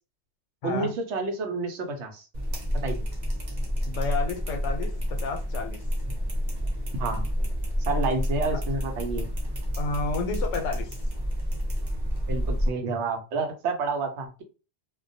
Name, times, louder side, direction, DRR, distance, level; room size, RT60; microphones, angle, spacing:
voice 1, 0.6-2.3 2.8-3.0 7.0-7.3 7.9-9.3 12.3-14.4, right 3 dB, 75° right, 5 dB, 0.9 m, -29 dB
sound 1, 2.3-12.7, equal, 45° right, 0.8 m, -29 dB
voice 2, 3.8-5.8 9.8-10.9, left 4 dB, 85° left, 5 dB, 0.9 m, -31 dB
2.2 x 2.1 x 2.6 m, 0.33 s
omnidirectional pair, 1.2 m